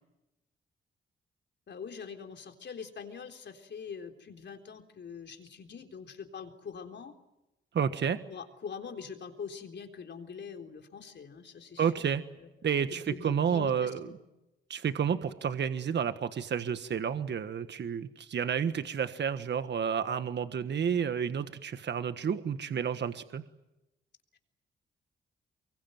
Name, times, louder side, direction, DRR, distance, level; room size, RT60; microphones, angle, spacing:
voice 1, 1.7-7.1 8.3-14.1, left 6 dB, 60° left, 5 dB, 3.8 m, -44 dB
voice 2, 7.7-8.2 11.8-12.2 12.6-14.0 14.7-23.4, right 7 dB, 60° right, 10 dB, 1.4 m, -30 dB
24.0 x 23.0 x 9.4 m, 0.94 s
cardioid pair, 75°, 21 cm